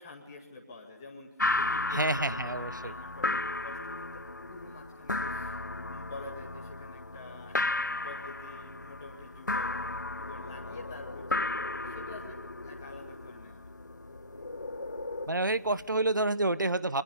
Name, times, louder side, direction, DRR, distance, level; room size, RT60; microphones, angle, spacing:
voice 1, 0.0-2.1 2.4-5.6 5.9-7.7 8.0-9.8 10.2-13.9, left 3 dB, 10° left, -2 dB, 2.1 m, -48 dB
sound 1, 1.4-15.9, left 2 dB, 70° left, 1.0 m, -35 dB
voice 2, 1.9-2.9 15.3-17.0, right 2 dB, 75° right, 16 dB, 1.3 m, -28 dB
sound 2, 10.2-15.3, left 2 dB, 50° left, 3.2 m, -43 dB
29.0 x 23.5 x 8.5 m, 0.94 s
figure-of-eight pair, 170°, 10 cm